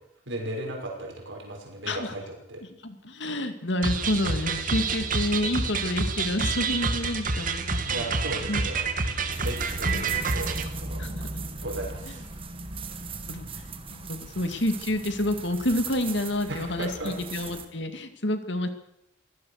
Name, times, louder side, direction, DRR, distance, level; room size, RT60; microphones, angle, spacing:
voice 1, 0.3-2.6 7.8-11.3 11.6-12.3 16.5-17.1, right 1 dB, 75° right, 0 dB, 6.0 m, -36 dB
voice 2, 2.8-8.1 8.4-8.6 9.9-10.3 11.0-11.4 13.2-13.5 13.9-18.7, left 1 dB, 65° left, 8 dB, 2.4 m, -29 dB
sound 1, 3.8-10.7, right 4 dB, 45° right, 2.1 m, -28 dB
sound 2, 9.3-17.7, right 3 dB, 30° right, 1.8 m, -38 dB
23.0 x 17.0 x 6.7 m, 0.80 s
head